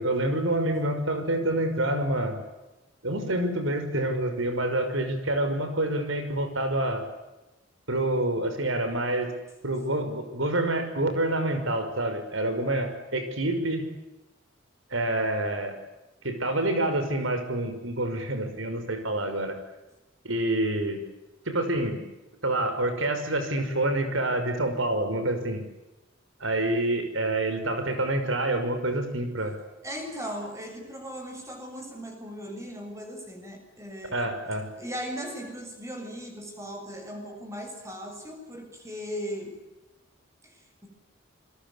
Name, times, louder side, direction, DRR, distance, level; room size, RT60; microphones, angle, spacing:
voice 1, 0.0-2.4 3.0-7.0 7.9-9.3 9.6-13.8 14.9-15.7 16.2-19.6 20.2-21.0 21.5-22.0 22.4-25.6 26.4-29.6 34.1-34.7, right 1 dB, 75° right, 8 dB, 5.8 m, -27 dB
voice 2, 29.8-34.3 34.8-39.6 40.4-40.9, equal, 15° right, 4 dB, 7.2 m, -38 dB
27.0 x 22.0 x 8.4 m, 1.0 s
head